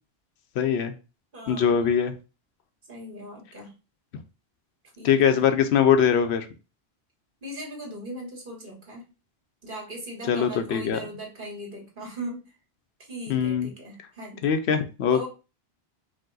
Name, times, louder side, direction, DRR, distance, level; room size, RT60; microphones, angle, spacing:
voice 1, 0.6-0.9 1.5-2.1 5.0-6.5 10.3-11.0 13.3-13.7 14.4-15.3, left 7 dB, 85° left, 8 dB, 0.9 m, -22 dB
voice 2, 1.3-1.9 2.9-3.7 5.0-5.5 7.4-9.1 9.6-12.5 13.0-14.5 15.1-15.3, right 1 dB, 55° right, -1 dB, 1.7 m, -39 dB
5.0 x 2.1 x 3.9 m, 0.32 s
omnidirectional pair, 1.1 m